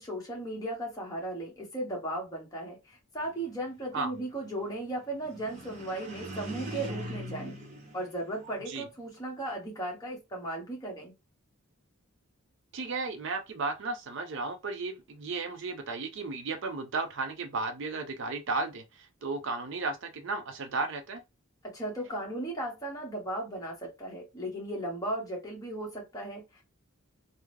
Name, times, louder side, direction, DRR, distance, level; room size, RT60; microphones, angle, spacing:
voice 1, 0.0-7.6 7.9-11.1 21.6-26.6, right 1 dB, 15° left, 1.2 m, -36 dB
sound 1, 5.2-8.8, equal, 35° right, 0.9 m, -41 dB
voice 2, 12.7-21.2, right 3 dB, 55° right, 0.5 m, -34 dB
3.5 x 2.1 x 3.2 m
head